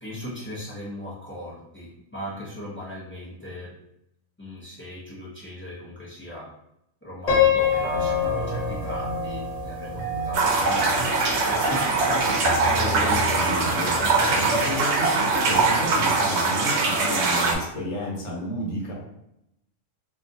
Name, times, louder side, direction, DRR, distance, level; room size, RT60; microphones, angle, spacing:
voice 1, 0.0-3.7 4.4-6.4 7.0-11.2 11.5-12.3 12.6-13.2, equal, 20° left, -6 dB, 0.3 m, -37 dB
Piano, 7.3-10.3, left 9 dB, 40° left, 0.7 m, -25 dB
sound 1, 7.6-16.2, right 2 dB, 35° right, 0.7 m, -34 dB
sound 2, 10.3-17.5, right 3 dB, 70° right, 0.8 m, -22 dB
voice 2, 13.0-18.9, equal, 85° left, -2 dB, 1.2 m, -32 dB
2.7 x 2.3 x 2.6 m, 0.82 s
omnidirectional pair, 1.3 m